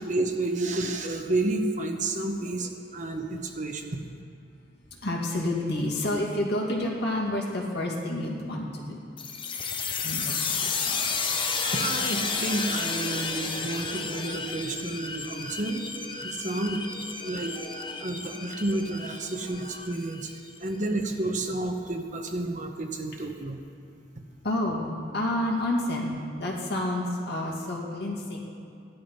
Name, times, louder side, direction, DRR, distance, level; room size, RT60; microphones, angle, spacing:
voice 1, 0.0-4.0 11.6-15.8 16.2-16.8 17.2-20.3 20.6-23.6, right 2 dB, 40° right, 4 dB, 1.0 m, -30 dB
voice 2, 5.0-9.0 10.0-10.7 24.4-28.4, left 1 dB, 55° left, -2 dB, 2.4 m, -29 dB
sound 1, 9.2-20.6, left 4 dB, 25° left, 0.8 m, -32 dB
15.0 x 11.5 x 5.6 m, 2.3 s
head